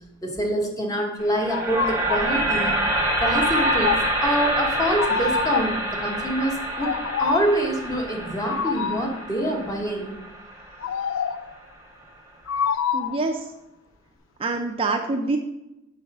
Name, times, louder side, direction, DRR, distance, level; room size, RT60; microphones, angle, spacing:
voice 1, 0.2-2.8 3.2-3.9 4.2-10.1, right 1 dB, 20° left, 0 dB, 1.1 m, -25 dB
sound 1, 1.2-11.3, right 1 dB, 15° right, 0.9 m, -27 dB
sound 2, 1.5-2.3 3.3-4.2 5.0-5.9 6.7-7.6 8.5-9.2 10.8-11.5 12.5-13.3, left 7 dB, 75° left, 0.3 m, -27 dB
voice 2, 12.9-13.5 14.4-15.4, right 3 dB, 30° right, 4 dB, 0.4 m, -25 dB
5.3 x 4.0 x 5.9 m, 0.94 s
head